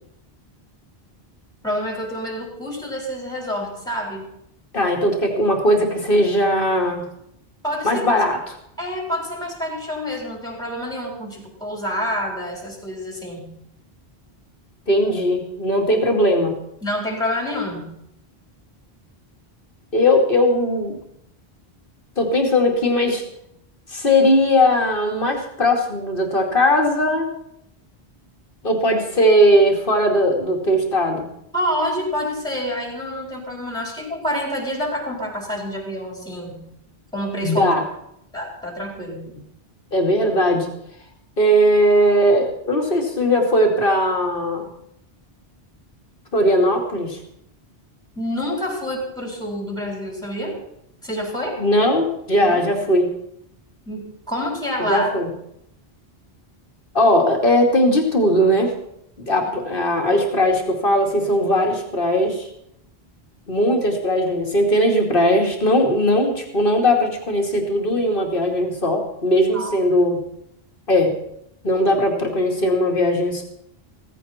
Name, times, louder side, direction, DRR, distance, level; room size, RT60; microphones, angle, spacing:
voice 1, 1.6-4.2 7.6-8.0 8.8-13.5 16.8-17.9 31.5-36.6 37.1-37.7 38.3-39.3 48.2-50.6 51.0-51.6 52.5-52.9 53.9-55.1 69.5-69.7, equal, 5° left, -1 dB, 4.2 m, -27 dB
voice 2, 4.7-7.0 7.8-8.6 14.9-16.5 19.9-21.0 22.2-23.2 23.9-27.3 28.6-31.3 37.4-37.8 39.9-40.7 41.4-44.7 46.3-47.2 51.6-53.1 54.8-55.3 56.9-58.7 59.3-62.5 63.5-70.2 70.9-71.1 71.6-73.4, equal, 60° left, 2 dB, 2.8 m, -19 dB
17.0 x 15.5 x 4.3 m, 0.76 s
omnidirectional pair, 1.0 m